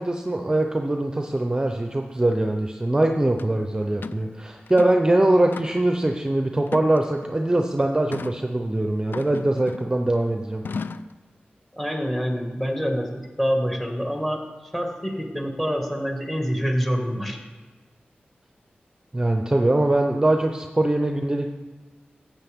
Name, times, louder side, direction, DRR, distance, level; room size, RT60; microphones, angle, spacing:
voice 1, 0.0-10.6 19.1-21.5, right 1 dB, 20° right, 4 dB, 0.7 m, -22 dB
sound 1, 3.4-3.5 4.0-4.2 4.7-5.1 5.5-6.0 6.7-7.3 8.1-8.4 9.1-10.0 10.6-11.1, left 4 dB, 70° left, 0.4 m, -35 dB
voice 2, 11.7-14.4 14.7-17.4, equal, 5° left, 2 dB, 1.9 m, -26 dB
14.5 x 7.6 x 3.6 m, 1.4 s
wide cardioid pair, 65°, 4 cm